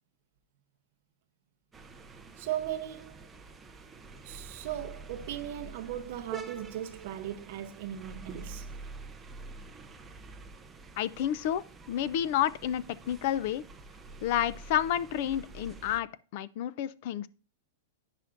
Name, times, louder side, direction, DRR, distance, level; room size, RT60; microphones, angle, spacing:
sound 1, 1.7-16.0, right 4 dB, 10° right, 0.5 m, -47 dB
voice 1, 2.4-3.3 4.2-8.7, right 11 dB, 55° right, 0.6 m, -38 dB
voice 2, 11.0-13.6 14.2-17.3, left 11 dB, 50° left, 0.4 m, -30 dB
9.7 x 5.7 x 2.5 m
supercardioid pair, 150°, 0 cm